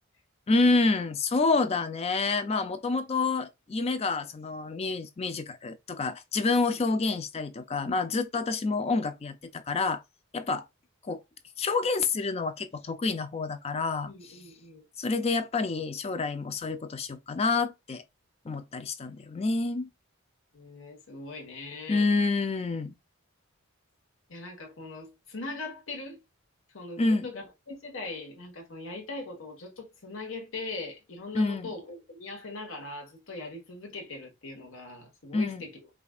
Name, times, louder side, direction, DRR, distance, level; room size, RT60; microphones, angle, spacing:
voice 1, 0.5-10.0 10.3-10.7 11.0-11.2 11.6-14.4 15.0-18.0 18.5-19.9 21.9-22.9 27.0-27.3 31.3-31.7 35.3-35.6, left 3 dB, 30° left, 0.4 m, -28 dB
voice 2, 14.1-14.8 20.5-22.1 24.3-26.2 26.7-35.7, left 3 dB, 65° left, 1.3 m, -40 dB
5.0 x 2.4 x 2.3 m
head